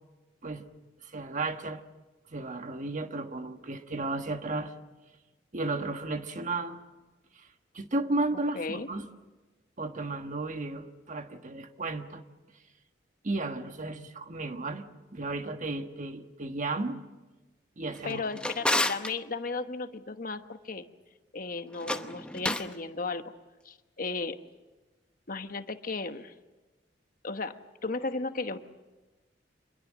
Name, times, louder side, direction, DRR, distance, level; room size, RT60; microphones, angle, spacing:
voice 1, 1.0-1.8 2.3-4.7 5.5-6.8 7.4-7.5 7.7-9.1 9.8-12.2 13.2-14.8 15.1-17.0 17.8-18.2, right 2 dB, 45° right, 7 dB, 1.4 m, -33 dB
voice 2, 8.3-8.9 18.0-20.8 21.3-23.3 23.6-24.4 25.3-26.3 27.2-27.5 27.8-28.6, left 3 dB, 50° left, 8 dB, 1.2 m, -35 dB
Drawer open or close, 17.9-19.1 21.7-22.8, left 1 dB, 5° left, 0.9 m, -30 dB
26.0 x 22.0 x 7.6 m, 1.2 s
head